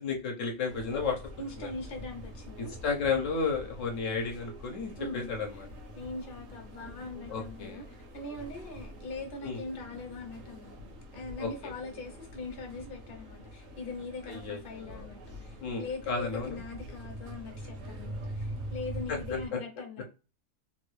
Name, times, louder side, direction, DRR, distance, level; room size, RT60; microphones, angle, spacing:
voice 1, 0.0-1.2 1.6-1.7 2.6-5.7 7.3-7.8 9.4-9.6 11.4-11.7 14.3-15.1 15.6-16.6 19.1-19.4, left 5 dB, 70° left, 1.1 m, -33 dB
sound 1, 0.7-19.5, equal, 80° right, 1.3 m, -44 dB
voice 2, 1.4-2.7 5.0-5.7 5.9-7.9 8.1-10.8 11.1-20.0, left 3 dB, 45° left, 0.9 m, -41 dB
3.3 x 2.3 x 3.1 m
omnidirectional pair, 1.4 m